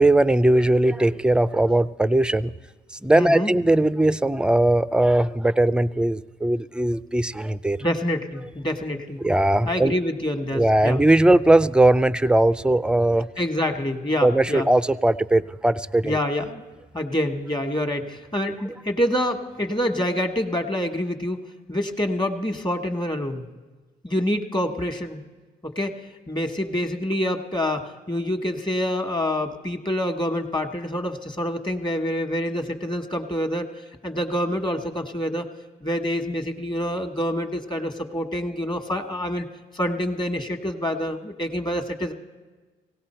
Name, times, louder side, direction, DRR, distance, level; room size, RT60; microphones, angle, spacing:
voice 1, 0.0-2.5 3.0-7.8 9.2-9.9 10.5-13.3 14.2-16.2, right 1 dB, 5° right, 15 dB, 0.4 m, -19 dB
voice 2, 3.1-3.5 7.8-9.3 9.6-11.0 13.4-14.7 16.0-16.6 16.9-21.4 21.7-23.4 24.0-25.3 25.6-25.9 26.3-33.7 34.0-35.5 35.8-39.5 39.7-42.1, left 1 dB, 25° left, 6 dB, 1.4 m, -26 dB
17.5 x 17.5 x 4.4 m, 1.3 s
cardioid pair, 90°, 20 cm